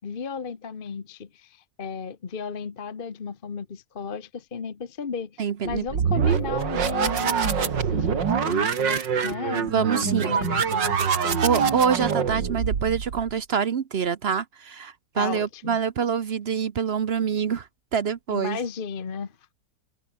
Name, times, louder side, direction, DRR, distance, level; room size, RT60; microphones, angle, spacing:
voice 1, 0.0-11.7 15.1-15.8 18.3-19.3, left 5 dB, 35° left, 1.1 m, -34 dB
voice 2, 5.4-5.9 6.1-6.2 9.6-10.4 11.4-18.6, right 7 dB, 50° right, 0.8 m, -26 dB
sound 1, 5.7-13.3, right 7 dB, 85° right, 2.6 m, -25 dB
omnidirectional pair, 1.9 m